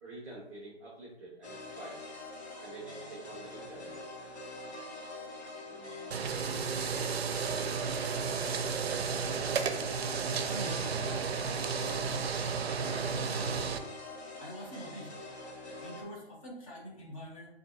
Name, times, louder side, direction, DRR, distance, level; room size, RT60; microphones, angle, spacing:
voice 1, 0.0-2.1 2.6-4.1, right 2 dB, 10° right, -9 dB, 0.5 m, -47 dB
sound 1, 1.4-16.0, left 2 dB, 70° left, 1.3 m, -45 dB
sound 2, 6.1-13.8, right 6 dB, 65° right, 0.5 m, -33 dB
voice 2, 10.4-11.1 12.8-13.6 14.4-15.1 15.4-15.5 15.8-17.5, equal, 30° left, -3 dB, 0.8 m, -44 dB
3.8 x 2.6 x 2.6 m, 0.82 s
figure-of-eight pair, 145°, 33 cm